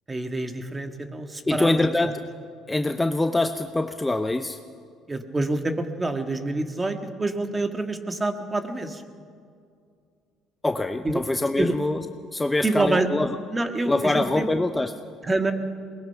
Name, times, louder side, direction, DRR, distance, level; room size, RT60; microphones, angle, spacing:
voice 1, 0.1-1.9 5.1-9.0 11.0-11.2 11.6-11.7 12.6-13.1 13.5-14.5 15.2-15.5, right 2 dB, 20° right, 7 dB, 1.8 m, -26 dB
voice 2, 1.5-2.2 2.7-4.6 10.6-12.0 12.3-13.4 13.9-14.9, left 2 dB, 10° left, 8 dB, 0.7 m, -24 dB
22.0 x 20.5 x 5.8 m, 2.3 s
cardioid pair, 95°, 0 cm